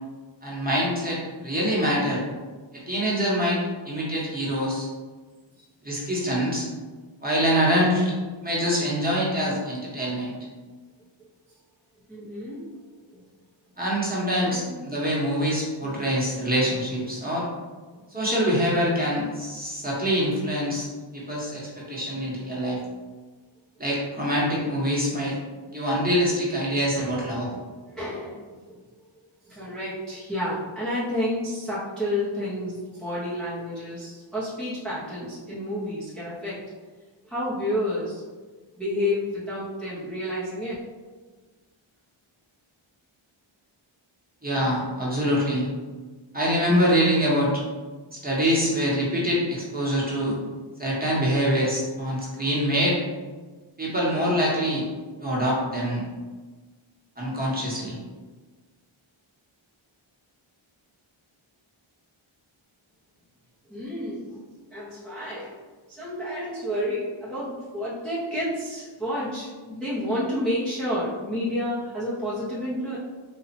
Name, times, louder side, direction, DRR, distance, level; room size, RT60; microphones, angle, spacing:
voice 1, 0.4-2.2 2.7-4.9 5.8-6.7 7.2-8.1 8.4-10.3 13.8-17.5 18.1-20.9 21.1-22.8 23.8-25.4 25.7-27.5 44.4-45.7 46.3-47.5 48.1-50.4 50.8-53.0 53.8-54.8 55.2-56.0 57.2-58.0, equal, 20° right, -6 dB, 1.5 m, -25 dB
voice 2, 12.1-12.8 13.1-13.2 14.4-14.8 15.3-15.4 15.8-16.1 17.9-18.0 26.9-27.6 27.9-28.8 29.4-36.6 37.2-38.2 38.8-40.7 63.7-64.4 64.7-65.6 65.9-73.0, left 1 dB, ahead, -10 dB, 1.2 m, -30 dB
4.3 x 2.7 x 4.3 m, 1.3 s
wide cardioid pair, 90°, 49 cm